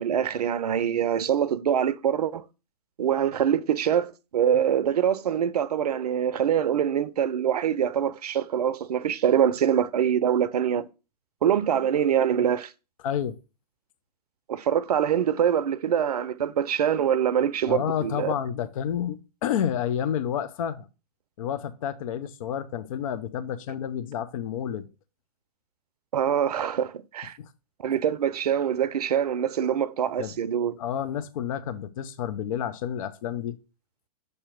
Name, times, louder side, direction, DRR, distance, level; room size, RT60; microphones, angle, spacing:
voice 1, 0.0-2.4 3.0-4.1 4.3-10.8 11.4-12.7 14.5-18.3 26.1-27.4 27.8-30.7, right 9 dB, 70° right, 0.5 m, -24 dB
voice 2, 13.0-13.4 17.7-20.9 21.4-24.9 27.4-27.5 30.2-30.3 30.8-33.6, left 9 dB, 55° left, 0.6 m, -30 dB
6.6 x 2.8 x 5.0 m
hypercardioid pair, 115°, 20 cm